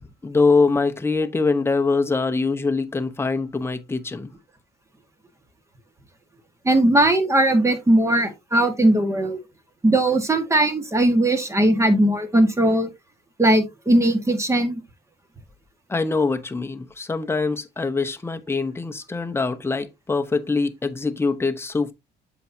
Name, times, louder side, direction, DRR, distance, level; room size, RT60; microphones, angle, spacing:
voice 1, 0.2-4.3 15.9-21.9, left 4 dB, 15° left, 0.9 m, -23 dB
voice 2, 6.6-9.4 9.8-12.9 13.4-14.8, right 1 dB, 15° right, 1.5 m, -19 dB
7.6 x 6.0 x 2.7 m
cardioid pair, 110°, 17 cm